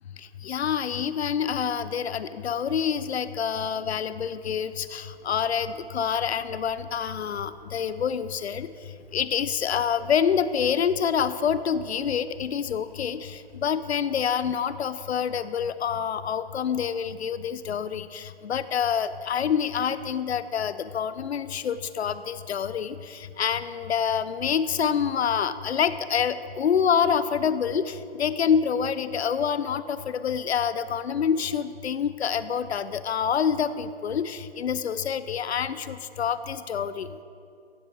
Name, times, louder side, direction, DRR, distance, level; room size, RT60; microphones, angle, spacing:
voice 1, 0.4-8.7 9.1-37.1, left 7 dB, 85° left, 14 dB, 0.5 m, -27 dB
sound 1, 4.3-13.7, right 2 dB, 5° right, 1.3 m, -57 dB
15.5 x 8.4 x 3.0 m, 2.4 s
hypercardioid pair, 160°, 32 cm